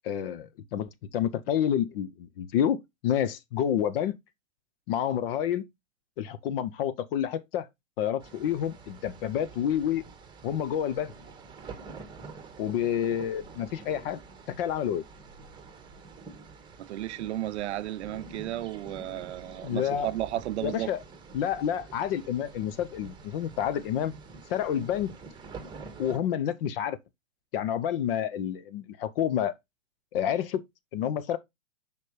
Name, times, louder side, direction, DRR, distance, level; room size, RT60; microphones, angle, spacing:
voice 1, 0.0-2.8 3.0-4.1 4.9-5.6 6.2-7.7 8.0-10.0 10.4-11.1 12.6-14.2 14.5-15.0 19.6-20.1 20.6-21.0 21.3-24.1 24.5-25.1 26.0-27.0 27.5-29.5 30.1-30.6 30.9-31.4, left 9 dB, 45° left, 0.8 m, -29 dB
sound 1, 8.2-26.2, right 4 dB, 10° right, 1.5 m, -47 dB
voice 2, 16.8-20.9, right 14 dB, 55° right, 0.6 m, -33 dB
6.6 x 5.3 x 3.2 m
hypercardioid pair, 120°, 40 cm